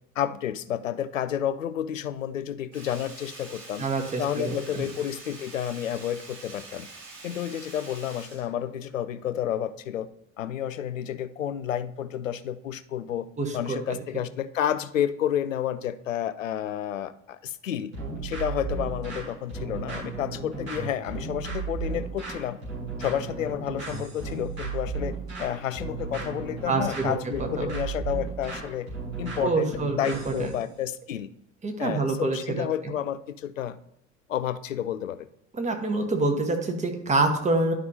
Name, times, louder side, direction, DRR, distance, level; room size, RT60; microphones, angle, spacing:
voice 1, 0.2-3.8 4.2-6.9 7.2-10.1 10.4-13.3 13.5-17.9 18.2-22.6 23.0-28.9 29.2-31.3 31.8-33.8 34.3-35.3, left 10 dB, 75° left, 13 dB, 0.5 m, -30 dB
Sink (filling or washing), 2.7-9.2 9.6-9.7, right 3 dB, 45° right, 2.7 m, -45 dB
voice 2, 3.8-4.9 13.4-14.0 26.7-27.8 29.4-30.5 31.6-32.7 35.5-37.7, right 3 dB, 20° right, 4 dB, 1.3 m, -27 dB
sound 1, 17.9-30.6, right 4 dB, 80° right, 3.2 m, -34 dB
11.0 x 5.3 x 2.7 m, 0.77 s
figure-of-eight pair, 70°, 39 cm